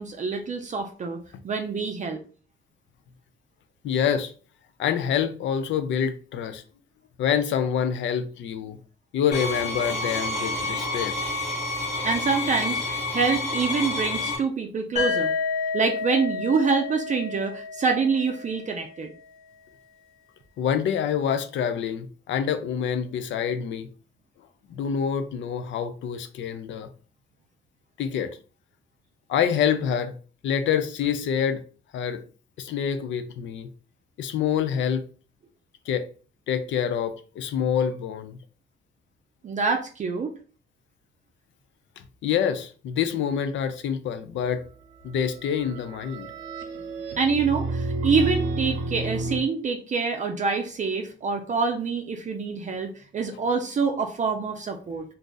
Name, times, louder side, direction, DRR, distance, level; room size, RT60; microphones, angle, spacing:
voice 1, 0.0-2.2 12.0-15.3 15.7-19.1 39.4-40.3 47.2-55.0, right 5 dB, 40° right, 0.5 m, -26 dB
voice 2, 3.8-4.3 4.8-6.6 7.2-8.8 9.1-11.1 20.6-23.9 24.7-26.9 28.0-28.3 29.3-30.1 30.4-31.6 31.9-32.2 32.6-33.7 34.2-35.1 35.9-36.1 36.5-38.4 42.2-44.6 45.0-46.3, left 8 dB, 70° left, 0.5 m, -26 dB
sound 1, 9.3-14.4, left 2 dB, 55° left, 1.0 m, -29 dB
sound 2, 15.0-18.8, left 4 dB, 35° left, 1.1 m, -30 dB
sound 3, 45.4-49.4, right 2 dB, 85° right, 0.6 m, -30 dB
2.6 x 2.4 x 3.8 m
cardioid pair, 90°, 20 cm